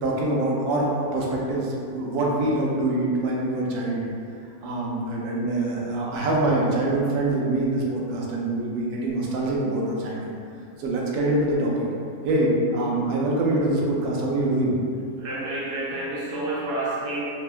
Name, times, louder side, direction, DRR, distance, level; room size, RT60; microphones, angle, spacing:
voice 1, 0.0-4.1 4.6-10.3 10.8-11.8 12.2-14.7, right 2 dB, 80° right, -3 dB, 1.1 m, -24 dB
voice 2, 15.2-17.2, right 2 dB, 65° right, -7 dB, 0.7 m, -29 dB
3.4 x 2.2 x 2.4 m, 2.5 s
omnidirectional pair, 1.6 m